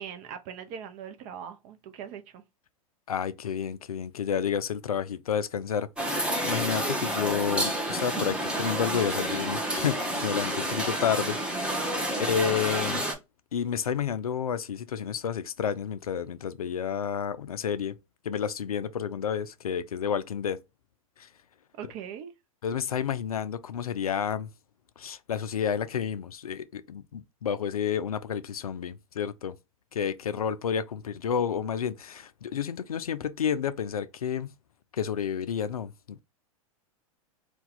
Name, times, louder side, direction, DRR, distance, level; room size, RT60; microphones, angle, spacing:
voice 1, 0.0-2.4 11.9-12.2 21.8-22.3, right 8 dB, 40° right, 0.6 m, -41 dB
voice 2, 3.1-5.9 6.4-11.4 11.7-13.1 13.5-17.9 18.2-20.6 21.2-21.3 22.6-24.5 25.0-29.5 29.9-34.5 34.9-36.2, left 8 dB, 85° left, 0.4 m, -30 dB
sound 1, 6.0-13.1, right 1 dB, 5° right, 0.8 m, -29 dB
2.7 x 2.3 x 3.8 m
figure-of-eight pair, 100°, 18 cm